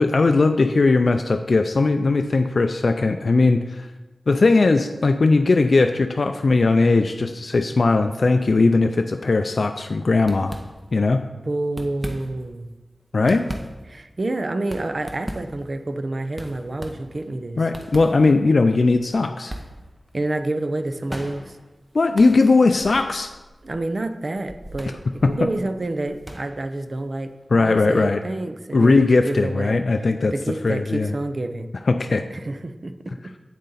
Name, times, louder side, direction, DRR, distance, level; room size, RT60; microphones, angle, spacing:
voice 1, 0.0-3.9 4.3-10.5 10.9-11.2 13.1-13.4 17.6-19.5 21.9-23.3 25.2-25.3 27.5-28.2 28.7-30.3 30.6-31.1 31.9-32.2, left 3 dB, 65° left, 7 dB, 0.3 m, -18 dB
sound 1, 10.2-11.1 11.6-12.6 13.0-27.9, equal, 15° right, 0.9 m, -40 dB
voice 2, 11.4-12.7 13.2-13.4 13.9-17.6 20.1-21.6 23.6-25.0 25.3-29.8 30.3-31.7 32.3-32.9, right 2 dB, 50° right, 8 dB, 0.6 m, -28 dB
8.2 x 6.6 x 4.0 m, 1.1 s
wide cardioid pair, 60°, 0 cm